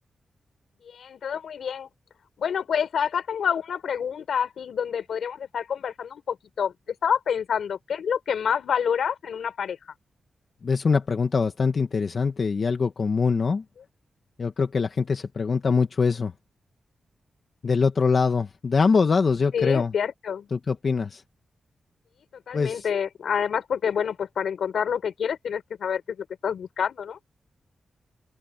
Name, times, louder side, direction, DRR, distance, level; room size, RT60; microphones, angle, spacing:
voice 1, 0.8-1.9 2.4-6.7 7.0-9.8 19.5-20.5 22.3-27.2, left 7 dB, 75° left, 4.1 m, -28 dB
voice 2, 10.6-13.6 14.4-16.3 17.6-19.9 20.5-21.2 22.5-22.8, left 5 dB, 40° left, 1.4 m, -23 dB
open air
wide cardioid pair, 150°, 0 cm